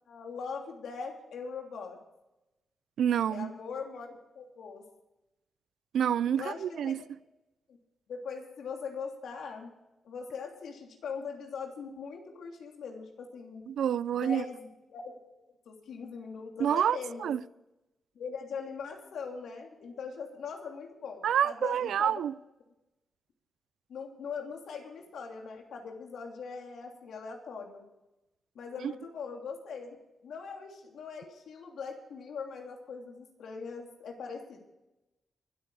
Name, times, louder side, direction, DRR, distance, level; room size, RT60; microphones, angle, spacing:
voice 1, 0.1-2.0 3.3-4.8 6.4-7.0 8.1-9.7 10.0-13.6 14.1-15.2 15.6-17.3 18.1-22.3 23.9-27.8 28.5-30.0 30.2-34.6, left 5 dB, 85° left, 3.1 m, -41 dB
voice 2, 3.0-3.5 5.9-7.0 13.7-14.4 16.6-17.4 21.2-22.3, right 9 dB, 85° right, 0.4 m, -28 dB
23.0 x 9.0 x 4.9 m
wide cardioid pair, 130°, 0 cm